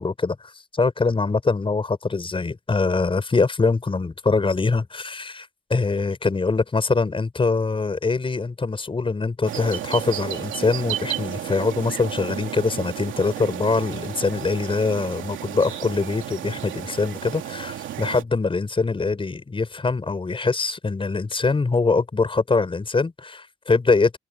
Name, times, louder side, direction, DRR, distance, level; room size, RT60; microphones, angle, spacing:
voice 1, 0.0-24.2, left 4 dB, 25° left, 5.3 m, -23 dB
sound 1, 9.4-18.2, right 11 dB, 75° right, 2.9 m, -33 dB
open air
cardioid pair, 90°, 20 cm